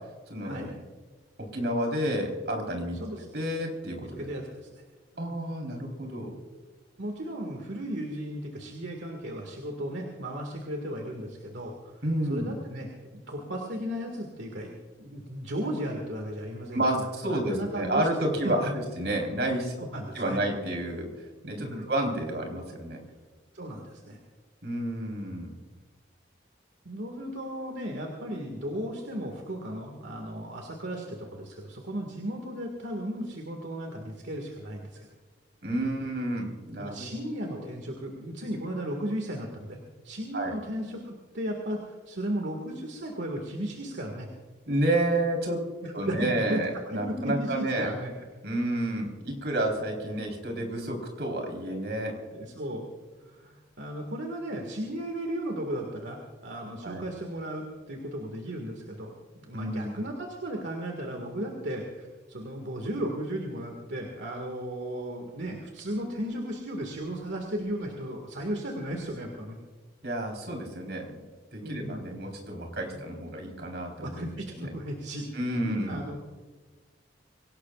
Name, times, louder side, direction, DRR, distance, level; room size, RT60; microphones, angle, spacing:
voice 1, 0.3-0.7 1.4-3.0 3.3-4.2 5.2-6.3 12.0-12.5 16.7-19.7 20.1-21.1 21.4-23.0 24.6-25.5 35.6-37.1 37.5-37.6 40.3-40.5 44.7-45.6 45.9-47.9 48.4-52.2 56.8-57.0 59.5-60.0 70.0-71.1 71.5-74.3 74.6-74.7 75.3-76.0, right 1 dB, 65° right, 1 dB, 4.1 m, -30 dB
voice 2, 4.0-4.7 5.2-5.4 7.0-12.0 12.3-12.9 13.1-14.7 15.0-18.8 19.8-20.4 21.6-21.9 23.5-24.2 26.9-35.1 36.8-44.3 45.8-46.6 46.9-48.2 52.3-52.9 53.2-59.1 59.4-69.6 71.6-72.1 72.9-73.0 74.0-75.3 75.6-76.2, right 1 dB, 85° right, 1 dB, 2.0 m, -35 dB
24.5 x 18.0 x 2.5 m, 1.4 s
head